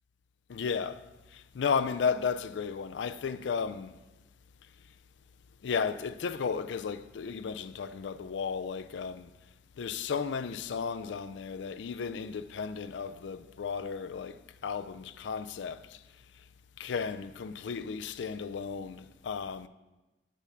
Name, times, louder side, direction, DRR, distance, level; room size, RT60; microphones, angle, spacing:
voice 1, 0.5-1.0 1.3-3.9 5.6-9.3 9.8-16.0 16.8-19.7, left 6 dB, 75° left, 0.4 m, -34 dB
6.8 x 6.2 x 5.8 m
head